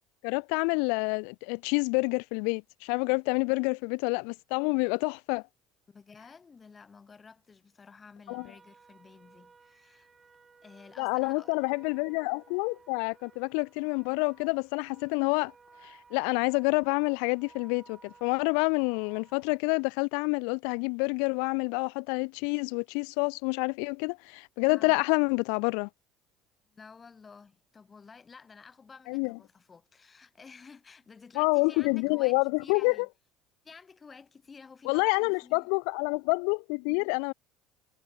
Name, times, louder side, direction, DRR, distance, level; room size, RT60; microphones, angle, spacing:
voice 1, 0.2-5.4 8.3-8.5 11.0-15.5 15.8-25.9 29.1-29.4 31.4-33.1 34.9-37.3, left 40 dB or more, 75° left, 0.4 m, -28 dB
voice 2, 5.9-10.1 10.6-11.6 24.7-25.0 26.7-33.1 33.6-35.7, left 5 dB, 30° left, 5.5 m, -52 dB
sound 1, 8.3-19.6, right 5 dB, 25° right, 1.9 m, -58 dB
supercardioid pair, 85°, 0 cm